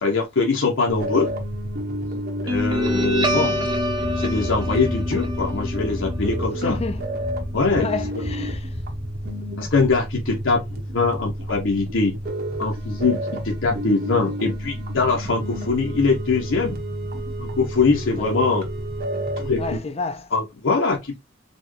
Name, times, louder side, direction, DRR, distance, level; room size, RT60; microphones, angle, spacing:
voice 1, 0.0-1.3 2.4-3.6 4.1-6.8 7.5-7.9 9.6-12.1 12.6-16.8 17.4-18.7 19.4-19.8 20.3-21.2, left 4 dB, 70° left, 0.8 m, -22 dB
sound 1, 0.9-19.8, right 1 dB, 50° right, 1.0 m, -30 dB
Guitar, 2.5-9.5, left 1 dB, 20° right, 0.9 m, -26 dB
voice 2, 2.9-3.2 6.6-7.0 7.7-8.8 18.2-18.3 19.6-20.3, left 3 dB, 30° left, 0.4 m, -30 dB
4.1 x 2.2 x 3.1 m
head